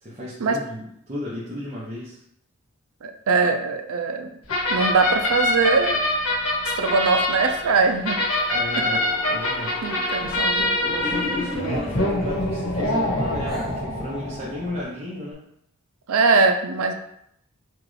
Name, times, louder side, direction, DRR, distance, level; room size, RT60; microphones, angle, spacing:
voice 1, 0.0-2.2 8.5-15.4, left 1 dB, 30° right, -8 dB, 0.9 m, -34 dB
voice 2, 3.0-4.3 4.7-6.0 6.6-8.3 9.8-10.7 16.1-16.9, right 4 dB, 85° right, 5 dB, 0.5 m, -21 dB
sound 1, 4.5-14.8, left 1 dB, 90° left, 1.4 m, -25 dB
sound 2, 8.4-13.8, equal, 60° left, 0.7 m, -40 dB
sound 3, 10.9-12.3 12.9-13.7, left 1 dB, ahead, 0.9 m, -32 dB
6.0 x 2.4 x 3.2 m, 0.74 s
head